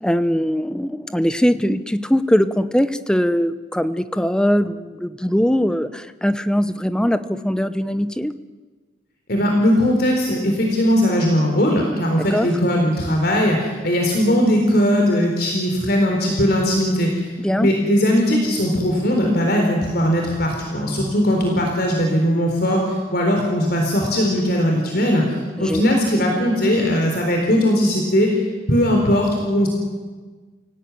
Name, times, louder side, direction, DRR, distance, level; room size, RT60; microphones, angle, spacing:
voice 1, 0.0-8.3 12.2-12.5 17.4-17.7 25.6-26.0, equal, 5° left, 11 dB, 0.9 m, -21 dB
voice 2, 9.3-17.3 17.6-29.7, equal, 50° left, 1 dB, 4.0 m, -19 dB
30.0 x 17.5 x 9.7 m, 1.4 s
head